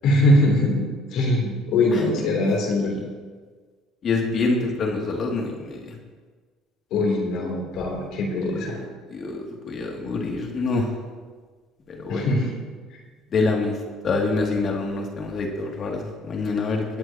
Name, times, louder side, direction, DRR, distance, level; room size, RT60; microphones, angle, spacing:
voice 1, 0.0-0.8 1.1-2.9 6.9-8.8 12.1-12.5, left 1 dB, 65° left, -1 dB, 3.2 m, -21 dB
voice 2, 4.0-5.9 9.1-10.9 11.9-12.3 13.3-13.7 14.0-16.8, left 3 dB, 50° left, 0 dB, 2.5 m, -26 dB
20.0 x 7.9 x 2.9 m, 1.5 s
hypercardioid pair, 70°, 0 cm